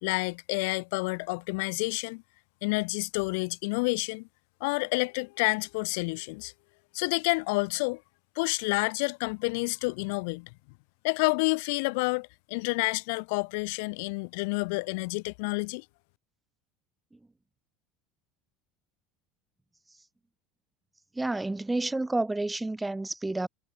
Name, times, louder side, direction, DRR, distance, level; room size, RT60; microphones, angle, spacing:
voice 1, 0.0-2.2 2.6-4.3 4.6-6.5 6.9-8.0 8.3-10.5 11.0-15.8, left 29 dB, 75° left, 4.6 m, -29 dB
voice 2, 21.1-23.5, right 2 dB, 10° right, 7.7 m, -30 dB
supercardioid pair, 105°, 0 cm